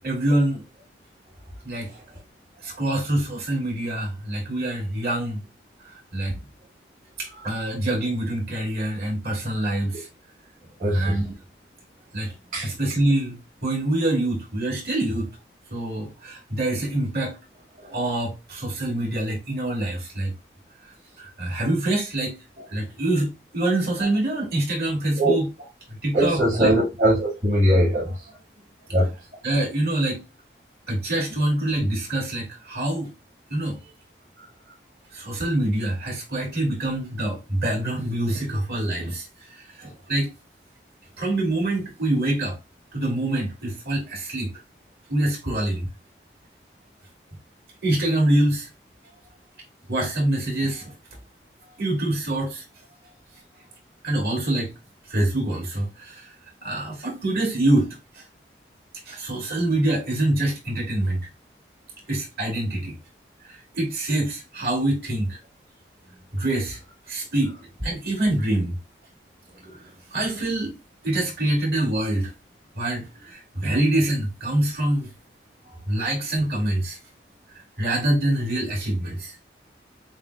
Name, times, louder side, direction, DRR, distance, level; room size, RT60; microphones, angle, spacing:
voice 1, 0.0-0.6 1.6-1.9 2.6-5.4 5.8-6.3 7.2-10.1 10.9-11.3 12.1-12.3 12.6-15.3 15.7-17.3 17.8-20.3 21.2-25.5 26.0-26.7 29.4-30.2 30.9-33.1 33.5-33.8 35.1-39.3 39.6-40.3 41.2-42.5 42.9-44.5 45.1-45.9 47.8-48.7 49.9-50.9 51.8-52.6 54.0-54.7 55.1-56.3 56.6-57.9 58.2-58.3 59.1-61.3 62.1-63.0 63.5-65.4 66.3-66.8 67.1-67.5 67.8-68.7 69.6-69.8 70.1-70.7 71.0-72.3 72.7-75.1 75.9-77.0 77.8-79.3, right 1 dB, 60° right, 2.6 m, -25 dB
voice 2, 10.8-11.2 12.5-12.7 25.2-25.4 26.1-28.1 28.9-29.1, right 1 dB, 45° right, 1.8 m, -20 dB
7.4 x 2.5 x 2.4 m
head